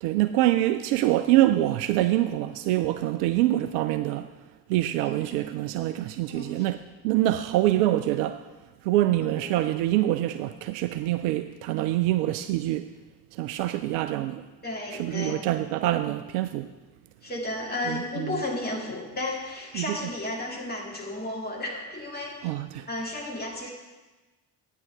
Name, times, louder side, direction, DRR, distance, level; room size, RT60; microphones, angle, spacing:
voice 1, 0.0-4.3 4.7-8.5 8.8-12.9 13.3-14.4 14.9-16.7 17.9-18.4 19.7-20.0 22.4-22.9, right 14 dB, 55° right, 0.5 m, -25 dB
voice 2, 6.3-6.7 9.3-9.4 14.6-15.4 17.2-22.5 22.9-23.7, left 2 dB, 20° left, 2.4 m, -33 dB
9.8 x 9.1 x 3.5 m
figure-of-eight pair, 45°, 50 cm